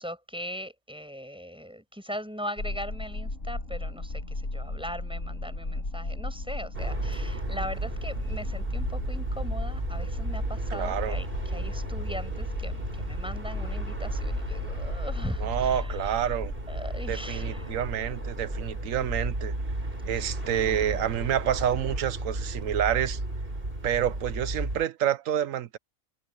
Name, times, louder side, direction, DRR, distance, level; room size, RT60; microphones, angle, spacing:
voice 1, 0.0-16.3 16.7-17.8 20.2-21.1, equal, 5° right, 6.7 m, -40 dB
sound 1, 2.6-19.2, left 2 dB, 75° left, 5.4 m, -36 dB
sound 2, 6.7-24.9, right 1 dB, 45° right, 4.6 m, -33 dB
voice 2, 10.7-11.2 15.4-16.5 17.1-19.5 20.1-23.2 23.8-25.8, right 10 dB, 80° right, 1.2 m, -28 dB
omnidirectional pair, 1.4 m